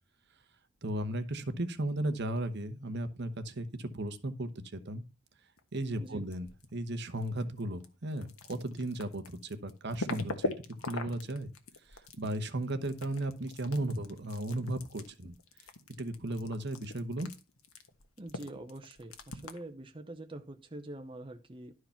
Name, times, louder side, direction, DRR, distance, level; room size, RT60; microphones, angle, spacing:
voice 1, 0.8-4.5 4.8-5.0 5.7-10.5 10.9-11.5 12.2-15.3 16.0-17.3, right 1 dB, 55° right, 10 dB, 1.0 m, -35 dB
sound 1, 5.6-6.7 7.0-19.7, left 2 dB, 80° left, 1.4 m, -42 dB
voice 2, 18.2-21.7, right 1 dB, 25° right, 5 dB, 0.8 m, -45 dB
12.0 x 4.8 x 5.7 m, 0.31 s
head